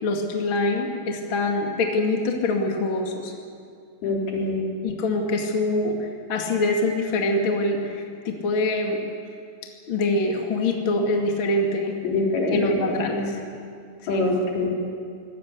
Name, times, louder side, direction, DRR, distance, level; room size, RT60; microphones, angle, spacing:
voice 1, 0.0-3.3 4.8-9.0 9.9-11.9 12.5-13.4 14.1-14.3, left 2 dB, 40° left, 2 dB, 2.5 m, -24 dB
voice 2, 4.0-4.6 12.0-12.7 13.1-13.3 14.1-14.8, left 2 dB, 85° left, -2 dB, 5.8 m, -24 dB
24.0 x 18.0 x 8.3 m, 2.3 s
omnidirectional pair, 4.3 m